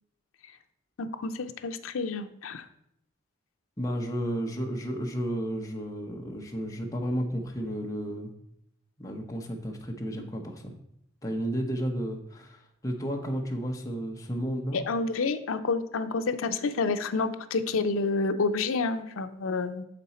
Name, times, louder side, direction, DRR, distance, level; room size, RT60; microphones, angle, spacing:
voice 1, 1.0-2.7 14.7-19.8, left 3 dB, 85° left, 8 dB, 0.5 m, -29 dB
voice 2, 3.8-8.3 9.0-10.7 11.2-14.8, equal, 15° left, 0 dB, 0.8 m, -32 dB
6.9 x 5.2 x 4.1 m, 0.76 s
head